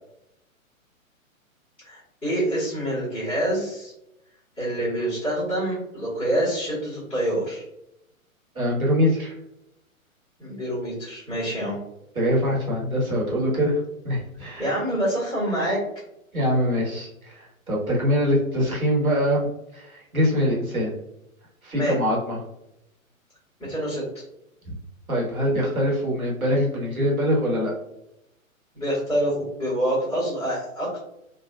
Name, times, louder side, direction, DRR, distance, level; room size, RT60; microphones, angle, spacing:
voice 1, 1.8-3.9 4.6-7.6 10.4-11.8 14.6-15.8 21.7-22.0 23.6-24.0 28.7-31.1, right 1 dB, 5° left, -13 dB, 1.4 m, -26 dB
voice 2, 8.5-9.4 12.1-14.7 16.3-19.5 19.7-20.9 21.6-22.4 24.7-24.8 25.1-27.7, equal, 80° right, -4 dB, 1.5 m, -23 dB
3.4 x 2.5 x 2.4 m, 0.82 s
figure-of-eight pair, 120°, 42 cm